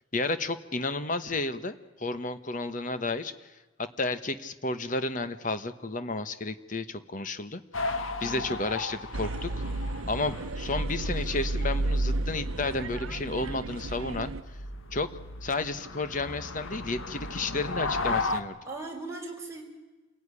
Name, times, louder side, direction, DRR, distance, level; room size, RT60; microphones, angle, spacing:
voice 1, 0.1-3.3 3.8-9.6 10.1-14.3 14.9-15.1 15.4-18.6, left 2 dB, 40° left, 11 dB, 1.2 m, -32 dB
sound 1, 7.7-18.4, left 3 dB, 75° left, 1.6 m, -36 dB
voice 2, 8.2-8.6 18.6-19.6, right 2 dB, 15° right, -1 dB, 4.8 m, -39 dB
sound 2, 9.1-14.4, right 2 dB, 90° right, 0.8 m, -32 dB
27.0 x 17.0 x 9.9 m, 1.2 s
head